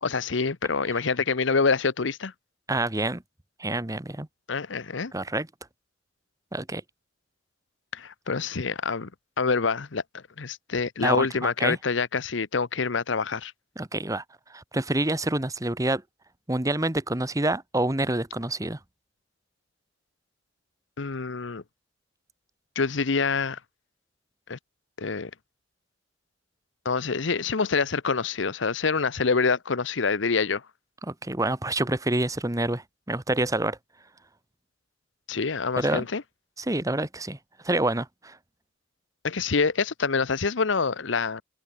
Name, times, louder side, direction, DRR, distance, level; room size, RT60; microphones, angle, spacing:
voice 1, 0.0-2.3 4.5-5.1 7.9-9.1 9.4-13.5 21.0-21.6 22.8-23.6 24.5-24.6 25.0-25.3 26.8-30.6 35.3-36.2 39.2-41.4, left 4 dB, 70° left, 0.9 m, -26 dB
voice 2, 2.7-3.2 3.6-4.3 5.1-5.5 6.5-6.8 11.0-11.8 13.8-14.2 14.5-16.0 16.5-18.8 31.1-33.8 35.8-36.1 36.6-37.4 37.6-38.4, right 2 dB, 15° right, 1.3 m, -27 dB
open air
head